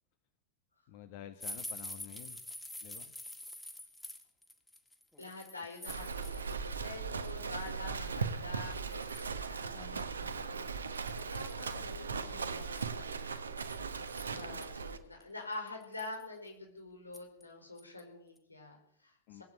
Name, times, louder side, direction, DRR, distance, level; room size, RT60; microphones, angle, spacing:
voice 1, 0.9-2.4 2.8-3.1 9.7-10.5 14.3-14.7 19.3-19.4, left 11 dB, 50° left, 9 dB, 1.2 m, -51 dB
sound 1, 1.4-6.8 7.1-7.7 8.3-8.4 8.7-9.5 10.0-10.1 10.3-10.4 10.9-11.6 12.6-14.7 15.2-15.3 15.7-16.2 17.1-17.4 17.8-18.0 18.4-18.5, left 1 dB, 5° left, 1.9 m, -47 dB
voice 2, 5.2-9.8 10.4-19.4, left 2 dB, 80° left, 2 dB, 4.9 m, -47 dB
Livestock farm animals working animals, 5.9-15.0, right 5 dB, 70° right, 1.3 m, -38 dB
19.5 x 8.9 x 8.1 m, 0.72 s
figure-of-eight pair, 90°, 0 cm